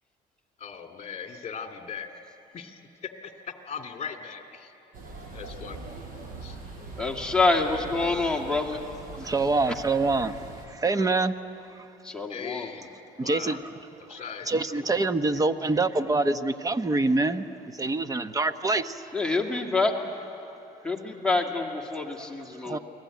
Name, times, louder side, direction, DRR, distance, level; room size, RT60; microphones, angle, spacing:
voice 1, 0.6-2.1 2.5-2.8 3.2-4.7 5.3-5.9 6.4-6.6 12.3-13.0 13.2-13.6 14.0-15.0, left 6 dB, 40° left, 4 dB, 2.7 m, -39 dB
sound 1, 4.9-10.7, right 3 dB, 55° right, 5.6 m, -42 dB
voice 2, 7.0-8.8 9.2-9.3 12.0-12.7 19.1-19.9 20.8-22.8, left 3 dB, 5° left, 0 dB, 2.4 m, -26 dB
voice 3, 9.1-10.4 10.7-11.4 11.8-11.9 13.2-13.6 14.5-17.5 17.7-19.0 22.7-22.8, right 3 dB, 20° right, 10 dB, 1.0 m, -25 dB
28.5 x 20.5 x 9.4 m, 2.8 s
cardioid pair, 110°, 17 cm